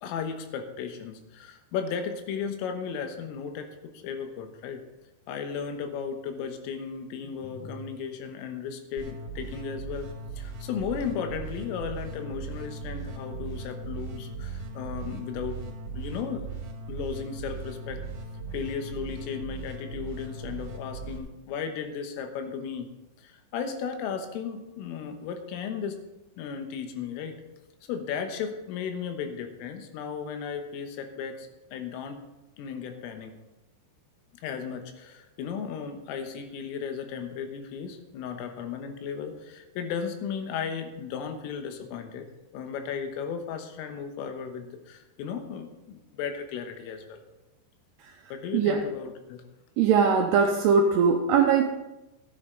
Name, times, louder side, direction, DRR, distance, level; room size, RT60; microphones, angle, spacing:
voice 1, 0.0-4.8 5.3-10.1 10.4-16.5 16.9-18.0 18.5-22.9 23.2-26.0 26.4-27.4 27.9-32.2 32.6-33.4 34.4-42.3 42.5-47.2 48.3-49.4, left 6 dB, 90° left, 6 dB, 3.8 m, -35 dB
sound 1, 9.0-21.2, right 3 dB, 50° right, 3.1 m, -38 dB
voice 2, 49.8-51.7, right 6 dB, 85° right, 2 dB, 2.5 m, -21 dB
14.0 x 9.5 x 3.8 m, 0.97 s
omnidirectional pair, 5.7 m